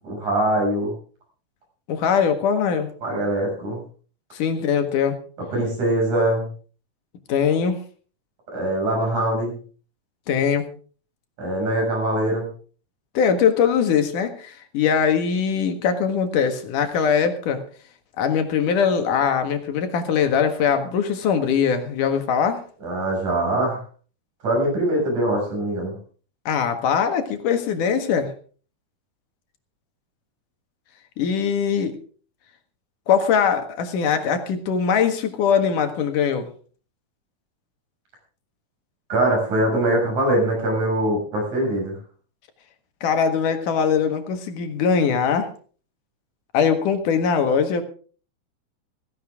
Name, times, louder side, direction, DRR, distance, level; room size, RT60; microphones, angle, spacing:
voice 1, 0.0-0.9 3.0-3.8 5.5-6.5 8.5-9.6 11.4-12.5 22.8-23.8 24.4-25.9 39.1-42.0, right 1 dB, 70° right, -1 dB, 8.2 m, -22 dB
voice 2, 1.9-2.9 4.3-5.2 7.3-7.8 10.3-10.7 13.1-17.6 18.2-22.6 26.5-28.3 31.2-32.0 33.1-36.5 43.0-45.5 46.5-47.8, left 7 dB, 90° left, 7 dB, 3.3 m, -21 dB
16.0 x 15.5 x 3.7 m, 0.41 s
omnidirectional pair, 3.5 m